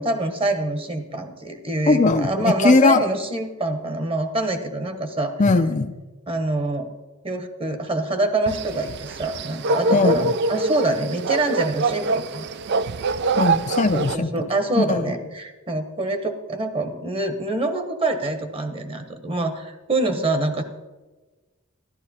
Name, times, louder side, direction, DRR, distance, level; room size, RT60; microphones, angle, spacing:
voice 1, 0.0-5.3 6.3-6.9 7.2-12.5 13.9-20.6, right 2 dB, 25° right, 7 dB, 1.1 m, -25 dB
voice 2, 1.9-3.0 5.4-6.0 9.9-10.4 13.4-14.3 14.8-15.1, left 3 dB, 35° left, 7 dB, 0.5 m, -19 dB
sound 1, 8.5-14.2, right 3 dB, 55° right, 0.4 m, -24 dB
14.0 x 12.0 x 4.3 m, 1.2 s
head